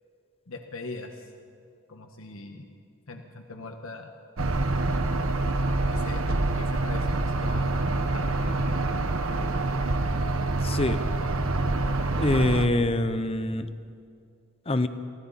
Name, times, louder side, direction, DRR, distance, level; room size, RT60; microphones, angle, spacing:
voice 1, 0.5-1.2 1.9-2.6 3.1-4.1 5.9-6.2 6.6-7.8 8.1-8.5, left 3 dB, 75° left, 4 dB, 1.4 m, -41 dB
sound 1, 4.4-12.7, right 2 dB, 80° right, 1.3 m, -26 dB
voice 2, 10.6-11.0 12.2-13.7 14.7-14.9, left 1 dB, 30° left, 10 dB, 0.8 m, -24 dB
28.0 x 24.0 x 4.2 m, 2.3 s
head